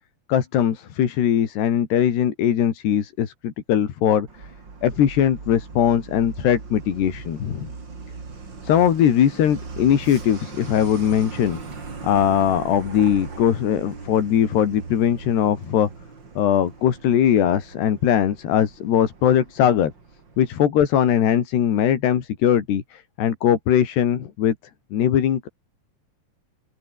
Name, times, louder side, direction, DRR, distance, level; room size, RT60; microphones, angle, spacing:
voice 1, 0.3-4.3 4.8-7.7 8.6-11.6 12.0-15.9 16.4-19.9 20.4-24.5 24.9-25.5, left 9 dB, 75° left, 4.7 m, -20 dB
Truck, 4.3-20.5, right 4 dB, 30° right, 3.5 m, -39 dB
open air
omnidirectional pair, 4.9 m